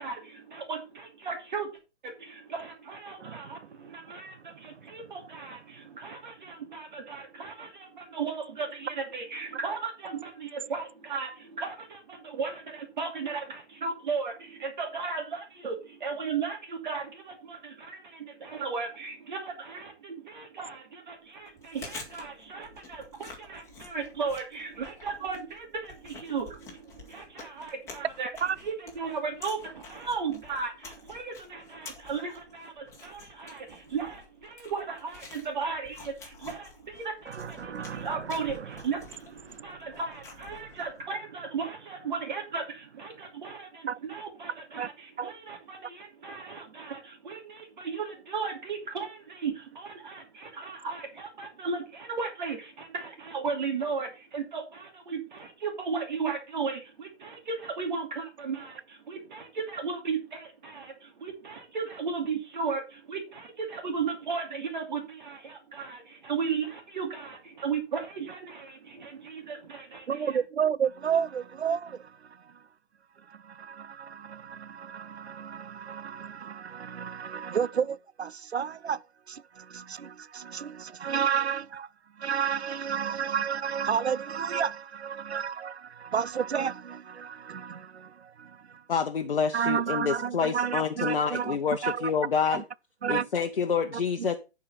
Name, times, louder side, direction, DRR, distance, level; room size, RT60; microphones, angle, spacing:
voice 1, 0.0-1.7 2.0-28.3 28.6-70.4, right 5 dB, 45° right, 2.7 m, -36 dB
Chewing mastication, 21.5-41.0, left 4 dB, 10° left, 1.9 m, -49 dB
voice 2, 37.3-38.6 39.5-39.7 43.9-44.0 44.8-44.9 45.2-45.3 70.1-72.6 73.3-81.9 82.2-88.8 89.5-92.1 92.5-92.6 93.0-93.3 94.2-94.3, right 7 dB, 70° right, 0.6 m, -32 dB
voice 3, 88.9-92.6 93.1-94.3, left 6 dB, 55° left, 1.0 m, -28 dB
11.0 x 4.9 x 5.6 m
figure-of-eight pair, 135°, 34 cm